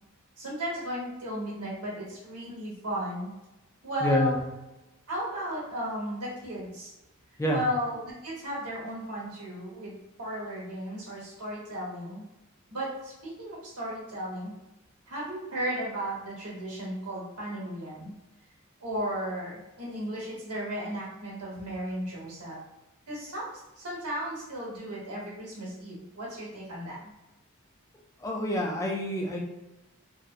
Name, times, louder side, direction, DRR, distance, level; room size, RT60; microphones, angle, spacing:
voice 1, 0.4-3.3 3.8-4.4 5.1-6.9 7.5-12.2 12.7-14.5 15.1-18.1 18.8-22.6 23.1-27.1, equal, 80° right, -5 dB, 1.2 m, -35 dB
voice 2, 4.0-4.4 7.4-7.6 28.2-29.4, left 1 dB, 15° left, 0 dB, 0.3 m, -27 dB
2.7 x 2.1 x 2.4 m, 1.0 s
head